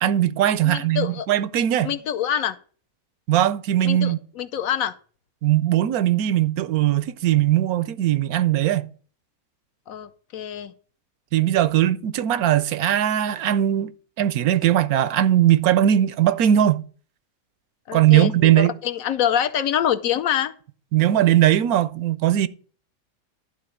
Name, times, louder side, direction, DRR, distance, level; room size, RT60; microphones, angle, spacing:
voice 1, 0.0-1.9 3.3-4.2 5.4-8.9 11.3-13.9 14.2-16.8 17.9-18.8 20.9-22.5, right 12 dB, 85° right, 1.1 m, -19 dB
voice 2, 0.6-1.3 1.8-2.6 3.8-4.9 9.9-10.7 17.9-20.5, left 9 dB, 75° left, 1.1 m, -25 dB
11.5 x 3.8 x 6.7 m
omnidirectional pair, 1.5 m